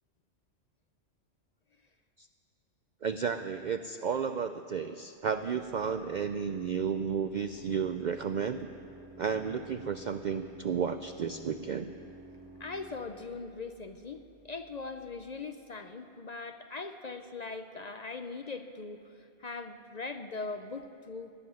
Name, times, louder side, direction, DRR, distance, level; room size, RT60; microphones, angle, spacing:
voice 1, 3.0-8.7 9.2-11.9, right 6 dB, 60° right, 9 dB, 0.4 m, -32 dB
Organ, 5.2-15.3, right 1 dB, 40° right, 3.6 m, -53 dB
voice 2, 12.6-21.3, left 4 dB, 45° left, 8 dB, 0.6 m, -41 dB
18.5 x 7.7 x 9.9 m, 2.5 s
omnidirectional pair, 1.2 m